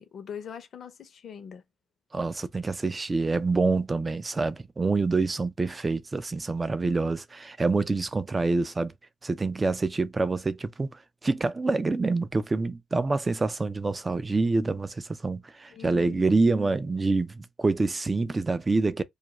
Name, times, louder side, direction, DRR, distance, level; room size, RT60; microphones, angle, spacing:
voice 1, 0.0-1.6 15.7-16.3, left 7 dB, 55° left, 0.6 m, -42 dB
voice 2, 2.1-8.9 9.2-19.0, right 3 dB, 25° right, 0.3 m, -26 dB
2.3 x 2.2 x 2.8 m
cardioid pair, 90°, 0 cm